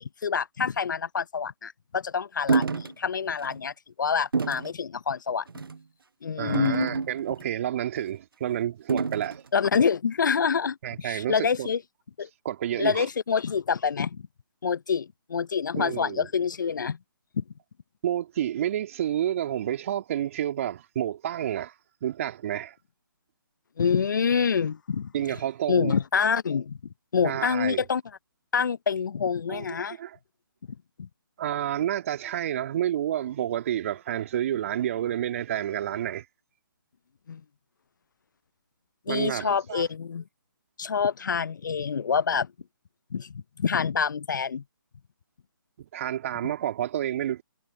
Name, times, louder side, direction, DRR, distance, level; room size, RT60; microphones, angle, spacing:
voice 1, 0.0-3.7 4.0-5.5 6.2-7.0 9.5-11.8 12.2-12.3 12.8-14.2 14.6-17.0 17.4-17.5 23.8-25.1 25.7-26.8 27.1-28.0 28.5-30.0 31.0-31.1 37.3-37.4 39.1-40.2 40.8-42.5 43.1-44.6, left 6 dB, 60° left, 0.7 m, -26 dB
sound 1, 2.5-2.9 3.4-3.6 4.3-4.7 5.5-5.8 6.5-7.4 8.9-9.4, right 4 dB, 80° right, 0.5 m, -27 dB
voice 2, 6.4-9.4 10.8-11.7 12.4-13.1 15.7-16.3 18.0-21.7 22.0-22.7 25.1-26.0 27.2-27.8 29.5-30.2 31.4-36.2 39.1-39.8 45.9-47.4, right 11 dB, 40° right, 2.7 m, -29 dB
figure-of-eight pair, 145°, 12 cm